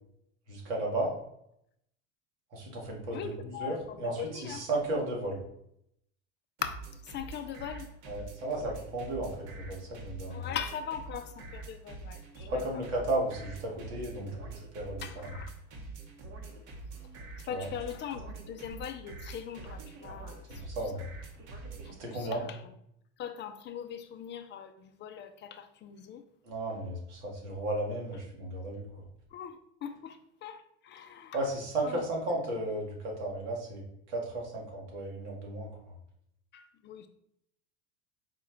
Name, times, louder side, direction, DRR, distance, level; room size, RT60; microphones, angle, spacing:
voice 1, 0.5-1.1 2.5-5.4 8.1-10.5 12.5-15.3 17.5-17.7 20.5-21.0 22.0-22.4 26.4-28.8 31.3-35.7, right 1 dB, 85° right, 1.5 m, -34 dB
voice 2, 3.1-4.6 6.6-6.8 7.1-7.9 10.3-12.5 15.0-15.5 17.5-20.4 21.8-22.6 23.2-26.2 29.3-31.4 31.8-32.0 36.5-37.1, left 8 dB, 35° left, 0.4 m, -40 dB
sound 1, 6.6-21.9, right 3 dB, 60° right, 1.1 m, -45 dB
4.3 x 2.4 x 4.2 m
supercardioid pair, 100°, 34 cm